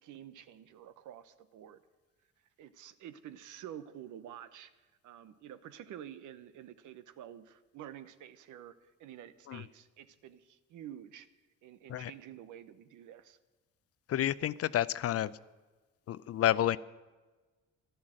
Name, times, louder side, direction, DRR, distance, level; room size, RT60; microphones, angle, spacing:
voice 1, 0.0-1.8 2.6-4.7 5.0-8.7 9.0-11.3 11.6-13.4, right 10 dB, 80° right, 13 dB, 0.9 m, -49 dB
voice 2, 14.1-15.3 16.1-16.8, left 12 dB, 50° left, 18 dB, 0.5 m, -30 dB
12.0 x 11.0 x 7.7 m, 1.2 s
cardioid pair, 90°, 30 cm